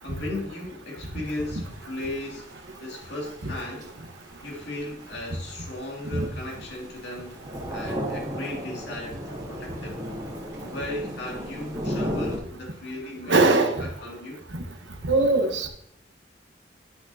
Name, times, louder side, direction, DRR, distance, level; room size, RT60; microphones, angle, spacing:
voice 1, 0.0-2.5 2.8-3.9 4.4-7.4 7.7-10.0 10.6-14.4, left 1 dB, 65° left, -1 dB, 2.4 m, -36 dB
Thunder / Rain, 1.2-12.4, equal, 20° right, 2.9 m, -35 dB
voice 2, 13.3-13.8 15.0-15.7, right 2 dB, 80° right, 5 dB, 1.1 m, -21 dB
11.0 x 6.2 x 2.7 m, 0.71 s
head